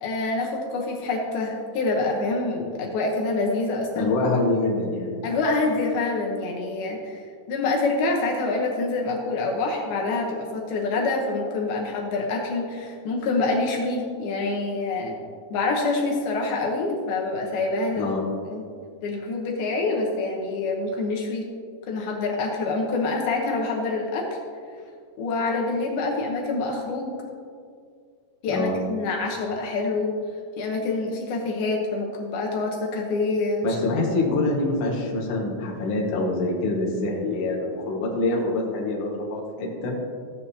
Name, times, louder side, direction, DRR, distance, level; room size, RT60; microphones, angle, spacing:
voice 1, 0.0-4.1 5.2-7.2 7.5-15.2 15.5-18.1 18.5-18.6 19.0-21.5 21.9-24.4 25.2-27.2 28.4-30.1 30.6-33.8, left 3 dB, 75° left, -1 dB, 2.9 m, -26 dB
voice 2, 3.9-5.1 18.0-18.2 28.5-28.7 33.6-39.9, left 2 dB, 50° left, -3 dB, 2.1 m, -25 dB
15.0 x 8.6 x 2.8 m, 2.2 s
omnidirectional pair, 4.6 m